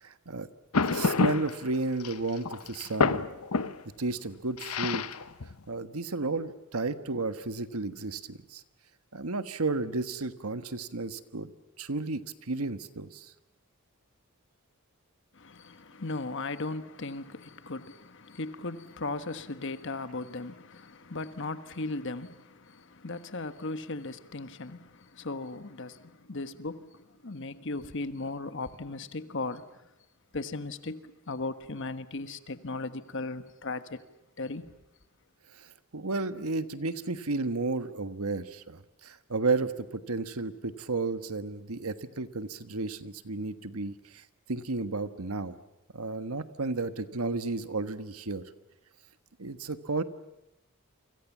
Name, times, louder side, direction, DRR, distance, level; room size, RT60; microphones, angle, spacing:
voice 1, 0.0-0.5 0.9-3.2 4.0-5.1 5.7-8.6 9.1-11.5 11.8-13.3 35.6-44.2 44.5-45.6 45.9-48.4 49.4-50.0, right 3 dB, 85° right, 1.4 m, -33 dB
sound 1, 0.7-1.6 2.0-3.8 4.6-5.6, left 4 dB, 90° left, 1.0 m, -28 dB
voice 2, 15.3-29.7 30.3-34.0 34.4-34.7, left 3 dB, 60° left, 1.4 m, -37 dB
29.0 x 25.0 x 7.3 m
head